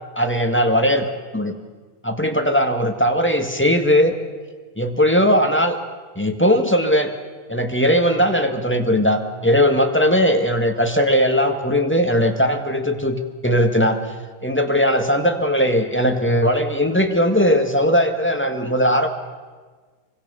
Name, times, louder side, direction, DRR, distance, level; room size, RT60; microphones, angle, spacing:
voice 1, 0.1-1.5 2.0-4.1 4.8-5.8 6.1-7.1 7.5-14.0 14.4-19.1, equal, 5° left, 5 dB, 1.6 m, -19 dB
27.0 x 24.5 x 6.9 m, 1.4 s
omnidirectional pair, 2.3 m